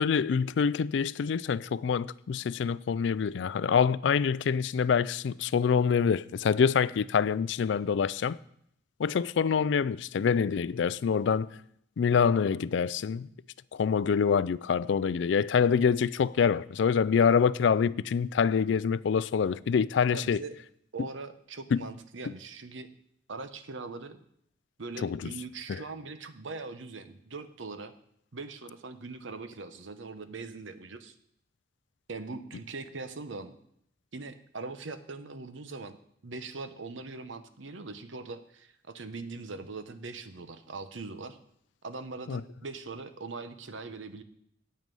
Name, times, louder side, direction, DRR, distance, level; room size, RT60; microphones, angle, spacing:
voice 1, 0.0-8.4 9.0-11.5 12.0-13.3 13.7-20.4 21.0-21.1 21.7-21.8 25.0-25.3 25.7-25.8 42.3-42.4, left 6 dB, 70° left, 0.3 m, -26 dB
voice 2, 20.1-20.6 20.9-22.9 23.3-24.2 24.8-27.9 28.3-31.2 32.1-33.6 34.1-36.0 36.2-41.4 41.8-44.2, right 3 dB, 85° right, 0.9 m, -41 dB
9.2 x 8.8 x 5.4 m
head